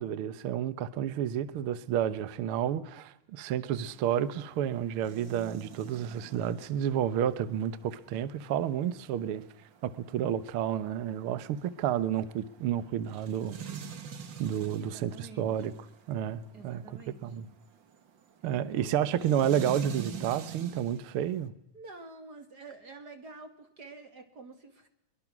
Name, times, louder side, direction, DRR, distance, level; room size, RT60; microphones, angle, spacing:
voice 1, 0.0-9.4 9.8-13.6 14.4-15.7 16.1-16.8 17.2-17.5 18.4-21.5, right 10 dB, 80° right, 1.2 m, -30 dB
sound 1, 3.8-21.5, right 8 dB, 60° right, 1.2 m, -47 dB
voice 2, 14.8-15.5 16.5-17.3 18.4-18.9 21.7-24.9, right 4 dB, 35° right, 2.1 m, -48 dB
23.0 x 22.5 x 6.1 m
omnidirectional pair, 4.1 m